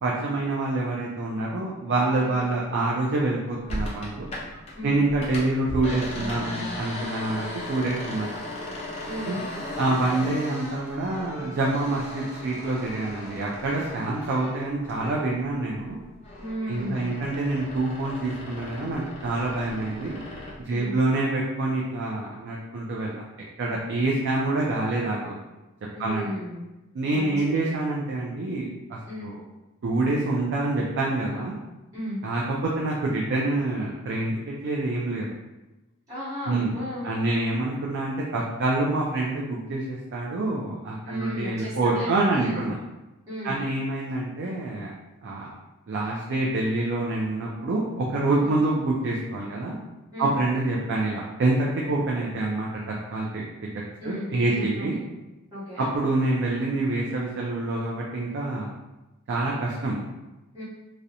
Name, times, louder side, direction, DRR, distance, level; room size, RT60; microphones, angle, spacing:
voice 1, 0.0-4.3 4.8-8.3 9.3-9.4 9.8-16.0 16.7-20.2 20.6-23.2 23.6-25.3 26.0-26.3 26.9-29.4 29.8-31.6 32.2-35.3 36.5-36.8 37.0-42.8 43.4-44.9 45.2-45.5 45.9-49.7 50.2-52.7 53.1-53.4 54.0-55.0 55.8-58.7 59.3-60.0, right 2 dB, 55° right, -3 dB, 0.3 m, -26 dB
sound 1, 3.7-4.7 5.0-15.4 15.7-20.6, left 1 dB, 30° left, 0.5 m, -37 dB
voice 2, 9.0-9.4 16.4-17.2 20.7-21.0 25.9-26.7 27.1-27.7 29.1-29.3 31.9-32.2 36.1-37.1 41.0-42.7 43.3-43.6 48.4-48.6 50.1-50.3 54.0-55.0 55.5-55.9 60.5-60.6, equal, 15° right, -13 dB, 0.9 m, -35 dB
2.4 x 2.0 x 2.7 m, 1.0 s
head